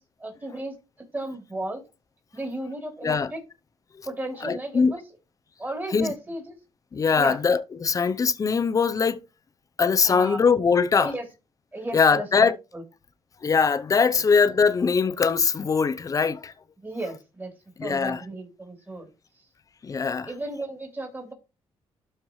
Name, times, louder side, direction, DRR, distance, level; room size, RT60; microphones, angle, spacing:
voice 1, 0.2-0.8 1.1-1.8 2.3-3.4 4.0-5.0 5.6-6.5 7.1-7.4 10.0-10.4 11.0-11.2 11.7-12.8 16.8-17.5 17.8-19.1 20.2-21.3, right 1 dB, 20° right, 3.4 m, -34 dB
voice 2, 4.4-4.9 5.9-6.1 6.9-9.2 9.8-11.1 11.9-12.6 13.4-16.5 17.8-18.2 19.8-20.3, left 5 dB, 35° left, 0.7 m, -22 dB
12.0 x 4.5 x 3.1 m
cardioid pair, 100°, 10 cm